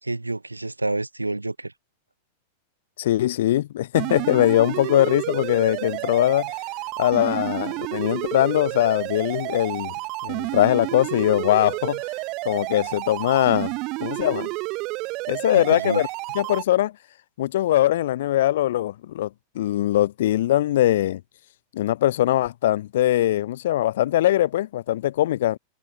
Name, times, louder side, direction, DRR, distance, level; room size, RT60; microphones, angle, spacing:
voice 1, 0.0-1.7 15.5-16.0, right 2 dB, 85° right, 1.4 m, -28 dB
voice 2, 3.0-6.5 7.0-9.9 10.2-12.0 12.5-13.7 14.0-14.5 15.3-16.1 16.4-16.9 17.4-19.3 19.6-21.2 21.7-25.6, left 13 dB, 55° left, 0.3 m, -21 dB
sound 1, 3.9-16.6, right 23 dB, 40° right, 1.4 m, -30 dB
figure-of-eight pair, 90°, 0 cm